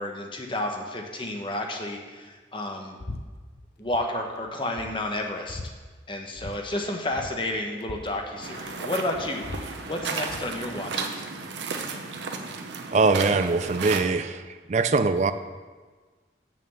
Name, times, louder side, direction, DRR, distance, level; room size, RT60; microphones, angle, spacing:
voice 1, 0.0-3.0 3.8-5.7 6.1-11.2, left 1 dB, 30° left, 2 dB, 1.0 m, -31 dB
sound 1, 3.0-3.2 3.5-4.0 4.4-4.5 4.8-5.7 6.4-6.6 6.8-6.9 7.1-8.8 9.1-10.5, left 2 dB, 65° left, 0.7 m, -40 dB
sound 2, 8.4-14.0, right 4 dB, 90° right, 0.8 m, -34 dB
voice 2, 12.9-14.4 14.7-15.3, right 3 dB, 40° right, 11 dB, 0.4 m, -22 dB
6.8 x 6.2 x 6.9 m, 1.4 s
head